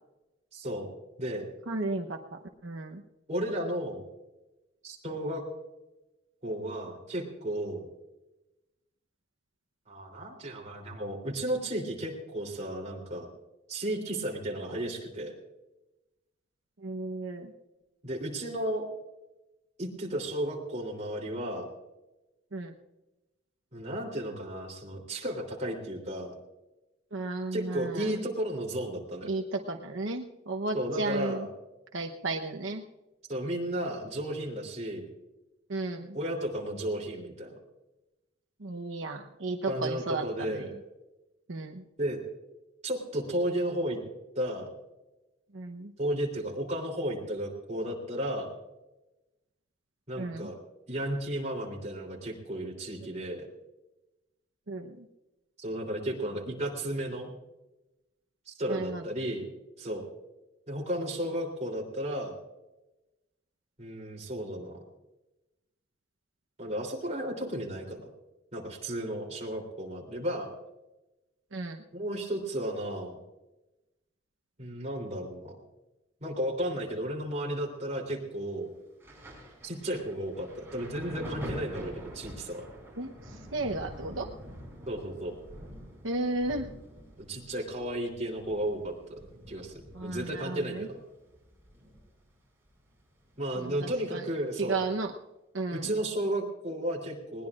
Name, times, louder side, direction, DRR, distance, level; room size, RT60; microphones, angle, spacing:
voice 1, 0.5-0.9 1.2-1.5 3.3-4.0 4.8-5.4 6.4-7.8 9.9-13.3 13.7-15.3 18.0-18.8 19.8-21.7 23.7-26.3 27.5-29.3 30.7-31.5 33.3-35.0 36.1-37.6 39.7-40.7 42.0-42.2 42.8-44.0 44.3-44.7 46.0-48.5 50.1-50.6 50.9-53.5 55.6-57.3 58.5-59.5 59.8-60.0 60.7-62.3 63.8-64.8 66.6-68.1 68.5-70.5 71.9-73.2 74.6-75.5 76.2-78.7 79.6-82.6 84.9-85.3 87.2-89.2 89.5-89.7 90.0-91.0 93.4-94.8 95.7-97.5, right 1 dB, 35° right, 0 dB, 3.4 m, -33 dB
voice 2, 1.7-2.2 2.6-3.0 16.8-17.5 22.5-22.7 27.1-28.1 29.2-31.5 31.9-32.8 35.7-36.2 38.6-40.7 41.5-41.8 45.5-45.9 50.2-50.5 54.7-55.1 58.7-59.1 71.5-71.8 83.0-84.3 86.0-86.7 89.9-90.9 93.6-94.2 94.6-95.1 95.5-95.9, right 2 dB, 85° right, 3 dB, 1.0 m, -34 dB
Thunder, 79.0-92.4 92.6-94.0 94.8-95.0, equal, 10° right, 5.8 m, -46 dB
20.5 x 19.5 x 2.5 m, 1.0 s
head